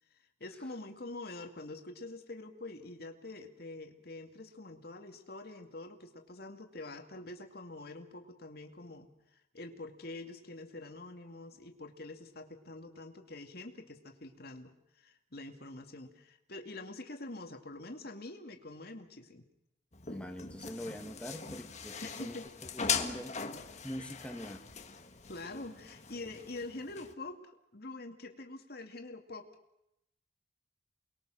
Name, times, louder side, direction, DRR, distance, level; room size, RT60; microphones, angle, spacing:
voice 1, 0.4-19.5 22.0-22.5 25.3-29.5, left 2 dB, 55° left, 4 dB, 2.4 m, -46 dB
sound 1, 19.9-27.1, left 6 dB, 35° left, 1.6 m, -40 dB
voice 2, 20.1-22.4 22.7-23.3 23.8-24.6 25.5-25.6 26.2-26.4, equal, 5° left, 4 dB, 2.3 m, -43 dB
29.0 x 21.5 x 6.4 m, 0.84 s
head